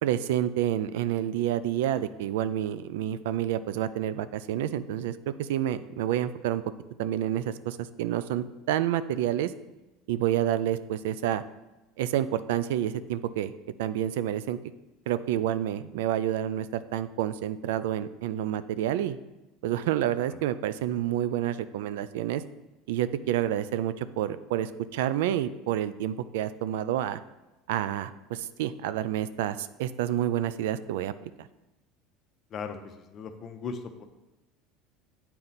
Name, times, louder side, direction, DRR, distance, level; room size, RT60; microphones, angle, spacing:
voice 1, 0.0-6.6 7.0-9.5 10.1-11.4 12.0-13.5 13.8-14.6 15.1-19.2 19.6-22.4 22.9-27.2 27.7-31.1 31.4-31.5, right 11 dB, 85° right, 14 dB, 0.3 m, -29 dB
voice 2, 32.5-34.0, left 5 dB, 40° left, 7 dB, 0.7 m, -38 dB
7.9 x 4.3 x 4.0 m, 1.0 s
supercardioid pair, 115°, 0 cm